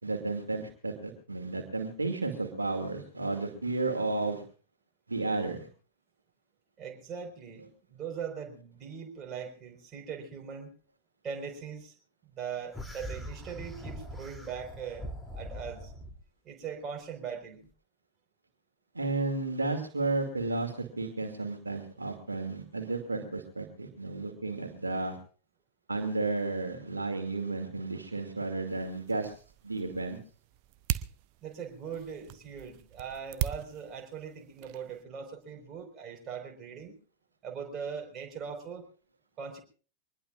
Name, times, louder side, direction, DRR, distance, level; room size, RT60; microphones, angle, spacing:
voice 1, 0.0-4.4 5.1-5.7 18.9-25.2 25.9-29.4 29.6-30.2, right 3 dB, 80° right, 4 dB, 2.5 m, -33 dB
voice 2, 6.8-10.7 11.2-11.9 12.2-15.1 15.3-15.9 16.4-17.6 31.4-36.9 37.4-38.9 39.4-39.6, right 7 dB, 30° right, 2 dB, 4.9 m, -40 dB
sound 1, 12.7-16.2, equal, ahead, 3.0 m, -42 dB
sound 2, 28.7-35.0, right 13 dB, 45° right, 0.8 m, -40 dB
24.0 x 20.5 x 2.5 m, 0.39 s
figure-of-eight pair, 90°, 0 cm